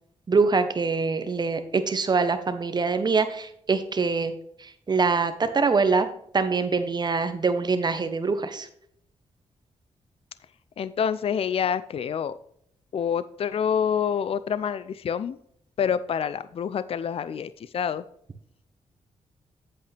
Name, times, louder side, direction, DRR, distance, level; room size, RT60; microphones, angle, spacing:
voice 1, 0.3-4.3 4.6-6.1 6.3-8.7, right 4 dB, 35° right, 9 dB, 1.1 m, -24 dB
voice 2, 10.8-12.3 12.9-15.4 15.8-18.0, left 7 dB, 55° left, 15 dB, 0.5 m, -27 dB
8.5 x 8.2 x 3.4 m, 0.69 s
cardioid pair, 95°, 12 cm